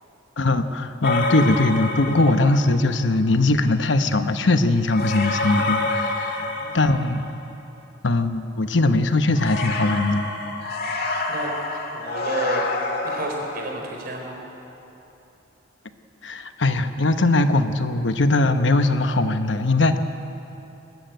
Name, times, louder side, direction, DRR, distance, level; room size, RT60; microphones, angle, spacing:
voice 1, 0.4-6.5 6.7-7.2 8.0-10.3 16.2-20.0, left 2 dB, 75° left, 9 dB, 1.0 m, -20 dB
sound 1, 1.0-2.8 4.9-7.4 9.3-13.7, left 2 dB, 55° left, 1.8 m, -27 dB
voice 2, 6.3-7.0 11.3-12.6 13.0-14.4, right 1 dB, 55° right, 0 dB, 4.2 m, -31 dB
21.0 x 13.5 x 9.2 m, 2.9 s
head